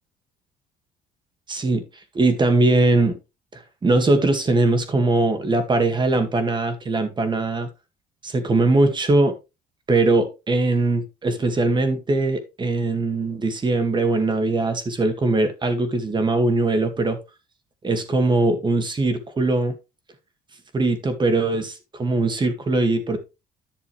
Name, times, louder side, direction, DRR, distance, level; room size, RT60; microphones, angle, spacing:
voice 1, 1.5-1.8 2.1-3.2 3.5-7.7 8.2-9.3 9.9-17.2 17.8-19.7 20.7-23.2, right 2 dB, 25° right, 7 dB, 2.1 m, -21 dB
11.0 x 6.8 x 3.3 m, 0.26 s
cardioid pair, 110°, 17 cm